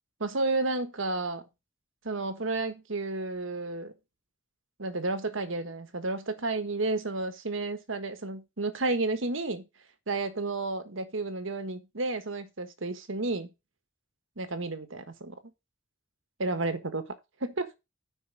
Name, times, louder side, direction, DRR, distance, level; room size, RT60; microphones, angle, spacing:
voice 1, 0.2-1.4 2.0-3.9 4.8-9.6 10.1-13.5 14.4-15.4 16.4-17.0 17.4-17.7, right 2 dB, 85° right, 1.4 m, -31 dB
9.4 x 5.4 x 5.3 m
head